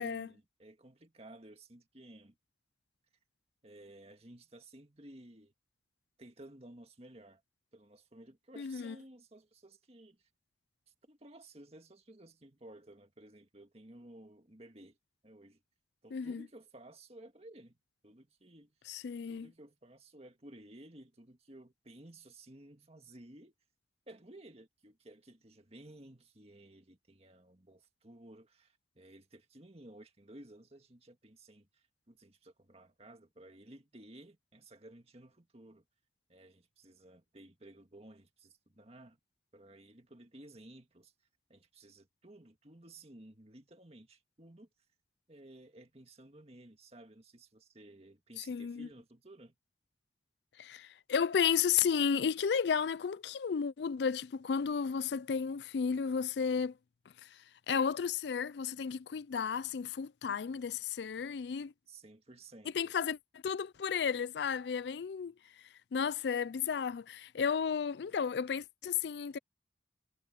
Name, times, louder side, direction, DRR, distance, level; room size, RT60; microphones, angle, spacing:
voice 1, 0.0-2.4 3.6-5.5 6.2-7.4 7.7-10.3 11.0-15.0 15.2-15.6 16.0-17.8 18.0-18.7 19.3-23.5 24.1-35.9 36.3-39.2 39.5-41.1 41.5-44.7 45.3-49.5 61.9-62.9, right 1 dB, 35° right, 2.0 m, -55 dB
voice 2, 8.6-9.0 16.1-16.4 18.9-19.5 48.4-48.9 50.6-56.8 57.2-61.7 62.7-63.2 63.4-65.6 65.9-69.4, left 6 dB, 75° left, 0.4 m, -33 dB
head